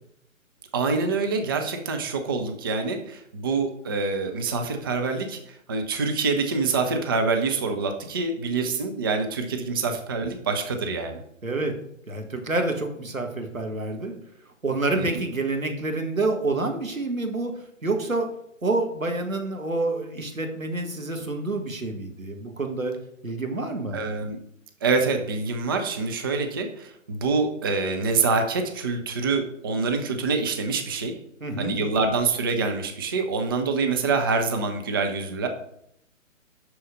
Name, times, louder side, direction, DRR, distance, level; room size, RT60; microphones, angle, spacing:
voice 1, 0.7-5.4 5.7-11.2 14.9-15.1 23.9-24.4 24.8-31.1 31.6-35.5, right 4 dB, 20° right, 5 dB, 0.5 m, -26 dB
voice 2, 11.4-11.7 12.1-14.2 14.6-17.5 17.8-18.3 18.6-22.9 23.2-24.0 31.4-31.8, right 2 dB, 90° right, 4 dB, 1.7 m, -28 dB
7.3 x 6.2 x 5.1 m, 0.73 s
figure-of-eight pair, 130°, 40 cm